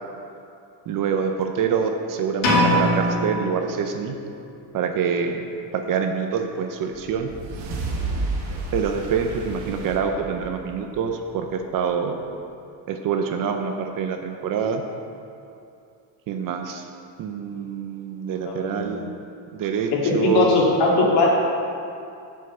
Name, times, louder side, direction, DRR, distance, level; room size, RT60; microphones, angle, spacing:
voice 1, 0.9-4.2 4.7-5.5 5.7-7.3 8.5-12.2 12.9-14.8 16.3-16.8 17.2-19.1 19.5-20.5, right 6 dB, 45° right, 5 dB, 0.6 m, -26 dB
sound 1, 2.4-4.3, equal, 75° left, 2.5 m, -22 dB
sound 2, 6.9-11.5, right 2 dB, 80° right, 1.8 m, -31 dB
voice 2, 18.4-19.0 20.2-21.3, left 3 dB, 60° left, -3 dB, 2.2 m, -20 dB
7.8 x 5.5 x 7.7 m, 2.6 s
cardioid pair, 175°, 47 cm